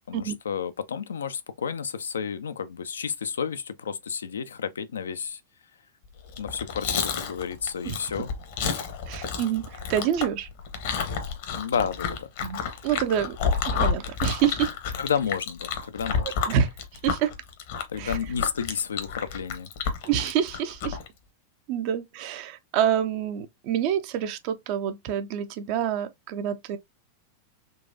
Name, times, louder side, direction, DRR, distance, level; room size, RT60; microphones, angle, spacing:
voice 1, 0.0-5.4 6.4-8.3 11.5-12.3 15.0-16.3 17.9-19.7, left 7 dB, 70° left, 0.4 m, -31 dB
Chewing mastication, 6.3-21.1, left 6 dB, 55° left, 0.9 m, -30 dB
voice 2, 9.1-10.5 12.4-13.4 13.7-14.7 16.4-16.7 17.0-17.3 18.0-18.2 20.0-21.0 21.7-26.8, right 9 dB, 45° right, 0.6 m, -27 dB
3.9 x 2.4 x 2.6 m
figure-of-eight pair, 90°, 0 cm